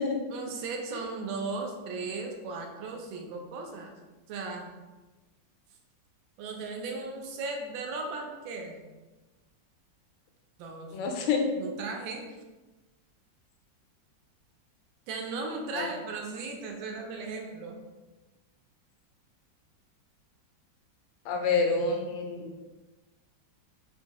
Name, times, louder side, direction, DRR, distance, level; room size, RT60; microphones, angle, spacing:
voice 1, 0.3-3.9 4.3-4.7 6.4-8.8 10.6-11.0 11.6-12.3 15.1-17.8, right 3 dB, 80° right, 2 dB, 1.3 m, -36 dB
voice 2, 10.9-11.6 15.7-15.9 21.3-22.5, left 4 dB, 85° left, 3 dB, 1.3 m, -27 dB
3.5 x 2.6 x 2.9 m, 1.2 s
omnidirectional pair, 2.1 m